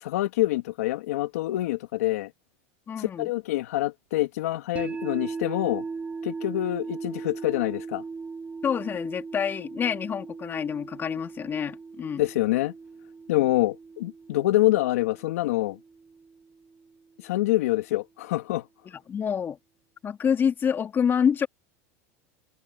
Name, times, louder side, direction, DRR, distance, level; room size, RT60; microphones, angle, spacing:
voice 1, 0.0-2.3 3.0-5.8 6.2-8.0 12.2-12.7 13.3-15.8 17.2-18.6, left 16 dB, 85° left, 2.4 m, -26 dB
voice 2, 2.9-3.3 8.6-12.2 18.9-19.6 20.0-21.5, left 7 dB, 25° left, 2.8 m, -27 dB
sound 1, 4.8-16.9, right 4 dB, 15° right, 6.5 m, -39 dB
supercardioid pair, 125°, 8 cm